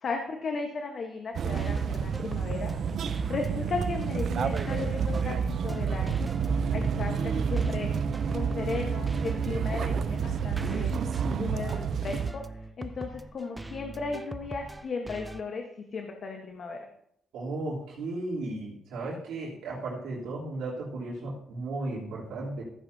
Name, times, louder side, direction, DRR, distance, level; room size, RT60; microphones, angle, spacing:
voice 1, 0.0-2.7 3.1-6.2 6.7-7.9 8.3-10.9 11.4-15.6 15.9-16.9, left 4 dB, 50° left, 3 dB, 1.1 m, -35 dB
sound 1, 1.3-15.4, right 1 dB, 10° right, 0.5 m, -42 dB
sound 2, 1.3-12.3, right 6 dB, 60° right, 0.5 m, -29 dB
voice 2, 17.3-22.6, right 2 dB, 85° right, -6 dB, 3.1 m, -35 dB
14.5 x 9.3 x 2.7 m, 0.74 s
cardioid pair, 90°, 0 cm